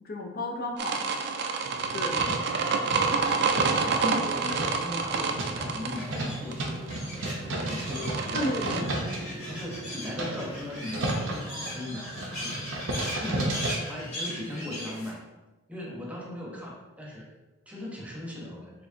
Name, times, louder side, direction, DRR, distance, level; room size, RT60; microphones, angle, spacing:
voice 1, 0.0-2.3 8.3-8.9, left 1 dB, 50° left, 2 dB, 0.5 m, -34 dB
sound 1, 0.8-8.8, right 4 dB, 55° right, 0.4 m, -28 dB
sound 2, 1.6-13.8, right 2 dB, 80° right, 0.7 m, -34 dB
voice 2, 2.2-2.7 3.7-9.2 9.5-15.3 15.7-17.3 17.7-18.7, left 1 dB, 5° right, -3 dB, 0.8 m, -38 dB
sound 3, 5.9-15.1, left 1 dB, 35° left, 1.4 m, -39 dB
4.3 x 3.2 x 2.7 m, 1.1 s
head